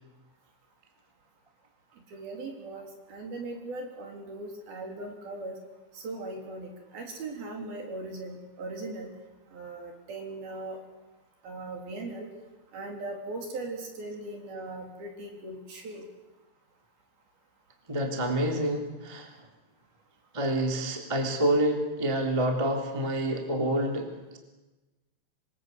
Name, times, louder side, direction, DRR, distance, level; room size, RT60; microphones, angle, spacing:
voice 1, 2.1-5.6 5.9-9.1 9.5-10.8 11.4-12.3 12.7-16.1, right 2 dB, 50° right, 2 dB, 5.3 m, -39 dB
voice 2, 17.9-19.3 20.3-24.4, right 1 dB, 10° right, 2 dB, 2.6 m, -28 dB
27.0 x 24.0 x 8.2 m, 1.1 s
omnidirectional pair, 5.7 m